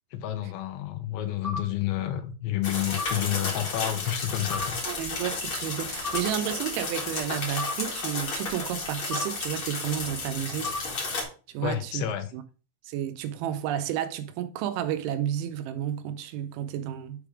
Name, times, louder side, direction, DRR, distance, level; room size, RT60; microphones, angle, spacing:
voice 1, 0.1-4.8 11.6-12.3, left 13 dB, 80° left, 3.0 m, -30 dB
sound 1, 1.4-1.6 3.0-3.2 4.5-4.7 6.0-6.2 7.6-7.8 9.1-9.3 10.6-10.8, left 3 dB, 60° right, 0.4 m, -32 dB
sound 2, 2.6-11.2, left 3 dB, 45° left, 1.6 m, -33 dB
voice 2, 4.9-10.8 11.5-12.0 12.3-12.4 12.8-17.3, right 11 dB, 85° right, 3.0 m, -31 dB
7.5 x 3.5 x 4.8 m
omnidirectional pair, 5.3 m